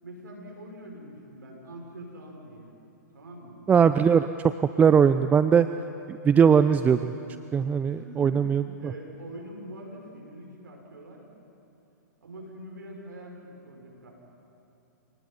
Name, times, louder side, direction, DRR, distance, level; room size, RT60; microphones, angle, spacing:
voice 1, 0.0-2.7 3.1-3.6 7.9-8.4 8.8-11.2 12.2-14.1, right 1 dB, 80° right, 0 dB, 6.0 m, -44 dB
voice 2, 3.7-5.7 6.1-7.1 7.5-8.9, right 7 dB, 15° right, 11 dB, 0.5 m, -20 dB
29.0 x 19.0 x 5.5 m, 2.9 s
hypercardioid pair, 120°, 10 cm